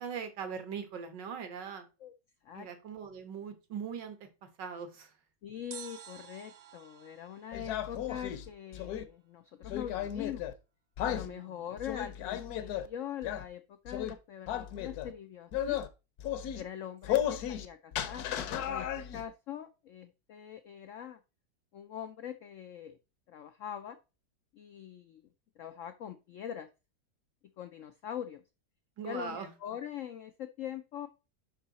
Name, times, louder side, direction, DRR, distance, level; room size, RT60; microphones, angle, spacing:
voice 1, 0.0-1.9 2.5-5.1 11.2-11.6 29.0-29.5, right 6 dB, 75° right, 7 dB, 1.9 m, -41 dB
voice 2, 5.4-10.5 11.1-15.8 16.5-18.3 18.6-18.9 19.1-21.2 21.7-23.0 23.3-24.0 24.5-25.3 25.6-26.7 27.6-28.4 29.0-31.1, left 10 dB, 90° left, 9 dB, 0.6 m, -42 dB
sound 1, 5.7-8.8 9.0-9.1, right 9 dB, 55° right, 1.1 m, -51 dB
sound 2, 7.5-9.0 9.6-10.5 11.0-11.3 11.8-12.9 13.2-13.5 13.9-14.1 14.5-15.1 15.5-15.9 16.2-16.6 17.0-17.7 17.9-19.2, left 11 dB, 65° left, 1.1 m, -34 dB
6.4 x 5.6 x 4.0 m, 0.30 s
omnidirectional pair, 2.0 m